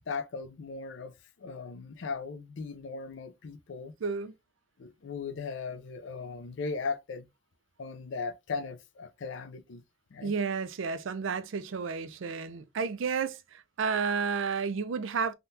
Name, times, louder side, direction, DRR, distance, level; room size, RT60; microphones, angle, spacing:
voice 1, 0.1-3.9 4.8-7.3 7.8-9.8 10.1-10.3, left 4 dB, 75° left, 0.4 m, -38 dB
voice 2, 4.0-4.3 10.2-15.3, right 5 dB, 80° right, 0.4 m, -31 dB
3.6 x 2.2 x 2.6 m
head